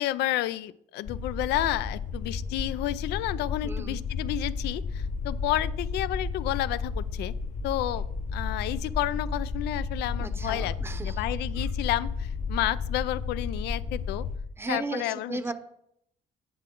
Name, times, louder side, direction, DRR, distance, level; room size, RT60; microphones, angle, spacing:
voice 1, 0.0-7.3 7.6-8.1 8.3-10.7 11.0-14.2 14.7-15.5, left 14 dB, 80° left, 16 dB, 0.5 m, -31 dB
sound 1, 1.1-14.4, left 4 dB, 45° left, 0.8 m, -32 dB
voice 2, 3.6-4.0 10.2-11.2 11.6-11.7 14.6-15.5, right 2 dB, 15° right, 10 dB, 0.8 m, -35 dB
9.7 x 7.6 x 3.7 m, 0.74 s
cardioid pair, 110°, 17 cm